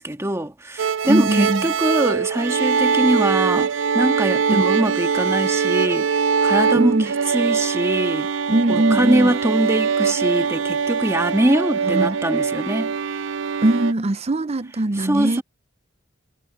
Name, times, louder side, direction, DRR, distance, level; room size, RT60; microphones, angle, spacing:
voice 1, 0.0-8.3 8.7-12.9 15.0-15.4, right 1 dB, 15° right, 1.7 m, -22 dB
sound 1, 0.8-13.9, right 6 dB, 80° right, 0.6 m, -22 dB
voice 2, 1.1-1.6 4.5-4.7 6.7-7.1 8.5-9.3 11.9-12.2 13.6-15.4, right 1 dB, 35° right, 0.6 m, -21 dB
head